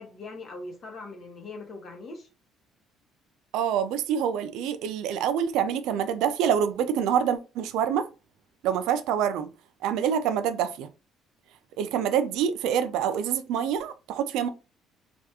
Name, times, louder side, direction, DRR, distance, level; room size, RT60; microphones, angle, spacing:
voice 1, 0.0-2.3, left 3 dB, 35° left, 0.9 m, -41 dB
voice 2, 3.5-8.1 8.6-9.5 9.8-10.9 11.8-14.5, right 8 dB, 80° right, 0.4 m, -26 dB
3.4 x 2.3 x 2.8 m
cardioid pair, 170°, 0 cm